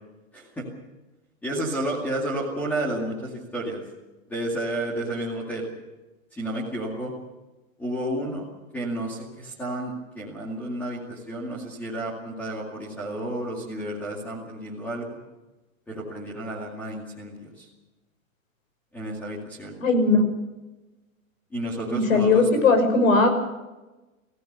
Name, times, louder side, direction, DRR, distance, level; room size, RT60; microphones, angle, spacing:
voice 1, 0.3-0.7 1.4-3.8 4.3-5.7 6.3-7.1 7.8-8.5 8.7-15.2 15.9-17.7 18.9-19.7 21.5-22.5, right 1 dB, 5° left, -3 dB, 2.2 m, -31 dB
voice 2, 19.8-20.2 21.9-23.3, left 3 dB, 70° left, 6 dB, 6.2 m, -19 dB
24.0 x 16.5 x 6.7 m, 1.1 s
hypercardioid pair, 175°, 41 cm